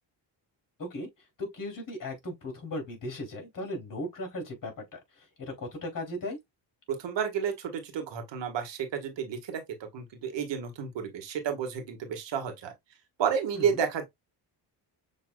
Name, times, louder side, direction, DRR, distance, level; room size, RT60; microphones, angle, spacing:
voice 1, 1.4-6.4 13.5-13.8, left 1 dB, 45° left, 3.0 m, -37 dB
voice 2, 7.0-12.7 13.2-14.0, right 7 dB, 70° right, 1.6 m, -31 dB
6.6 x 3.2 x 2.2 m
cardioid pair, 75°, 45 cm